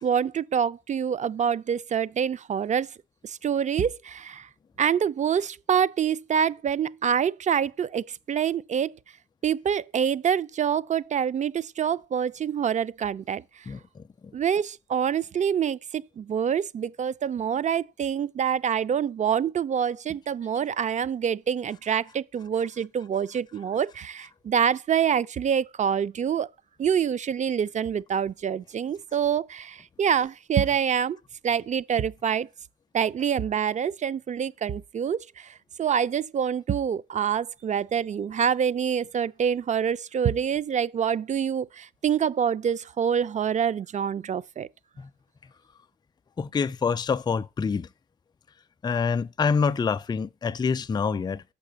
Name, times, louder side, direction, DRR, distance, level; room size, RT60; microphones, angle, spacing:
voice 1, 0.0-2.9 3.2-4.5 4.8-8.9 9.4-13.4 14.3-26.5 26.8-31.2 31.4-32.5 32.9-35.5 35.8-44.7, right 8 dB, 35° right, 0.4 m, -26 dB
voice 2, 46.4-47.9 48.8-51.4, left 5 dB, 20° left, 0.4 m, -26 dB
6.8 x 6.0 x 6.7 m
cardioid pair, 90°, 20 cm